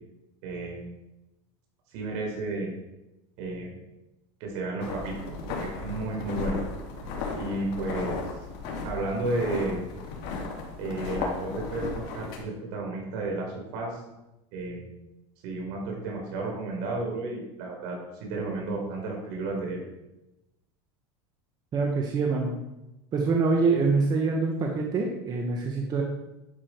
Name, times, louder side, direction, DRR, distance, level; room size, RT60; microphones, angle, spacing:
voice 1, 0.4-0.9 1.9-2.7 3.4-3.8 4.4-5.2 5.5-6.6 7.4-8.2 8.8-9.8 10.8-14.0 14.5-14.9 15.4-19.8, right 2 dB, 65° right, 0 dB, 4.5 m, -32 dB
sound 1, 4.8-12.4, left 4 dB, 60° left, 3.0 m, -35 dB
voice 2, 21.7-22.5 23.1-26.0, right 4 dB, 25° right, 1 dB, 1.3 m, -25 dB
11.5 x 7.4 x 4.6 m, 0.95 s
supercardioid pair, 145°, 14 cm